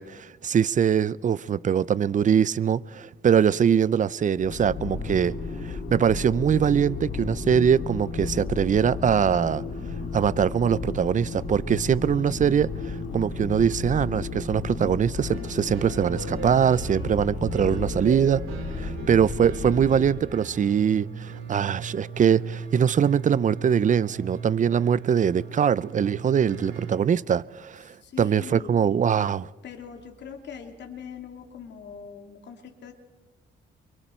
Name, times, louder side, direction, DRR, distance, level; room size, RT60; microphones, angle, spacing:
voice 1, 0.0-5.4 5.6-9.6 10.1-18.4 18.7-29.5, right 8 dB, 40° right, 0.6 m, -23 dB
sound 1, 4.4-20.0, left 4 dB, 80° left, 5.2 m, -33 dB
sound 2, 15.1-26.9, right 5 dB, 85° right, 4.3 m, -38 dB
voice 2, 18.0-18.4 27.8-28.9 29.6-32.9, left 6 dB, 60° left, 2.6 m, -42 dB
28.5 x 23.5 x 4.5 m
cardioid pair, 90°, 20 cm